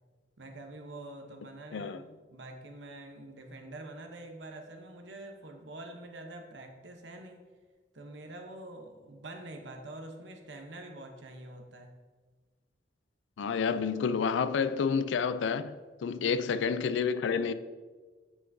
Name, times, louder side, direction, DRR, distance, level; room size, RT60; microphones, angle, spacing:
voice 1, 0.4-7.4 7.9-11.9 16.1-16.4, right 2 dB, 80° right, 0.9 m, -46 dB
voice 2, 13.4-15.8 16.0-17.5, left 6 dB, 85° left, 0.3 m, -29 dB
8.2 x 5.7 x 2.7 m
head